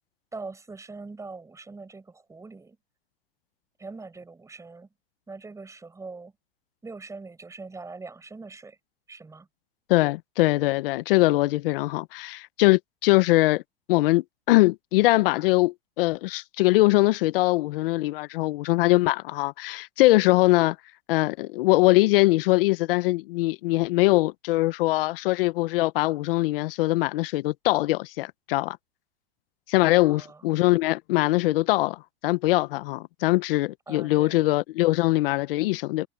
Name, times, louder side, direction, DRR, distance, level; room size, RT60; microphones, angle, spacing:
voice 1, 0.3-2.8 3.8-4.9 5.3-6.3 6.8-8.8 9.1-9.5 29.8-30.4 33.9-34.4, right 3 dB, 10° right, 5.1 m, -42 dB
voice 2, 9.9-13.6 13.9-20.8 21.1-28.8 29.7-36.1, left 20 dB, 65° left, 1.0 m, -22 dB
hypercardioid pair, 125°, 31 cm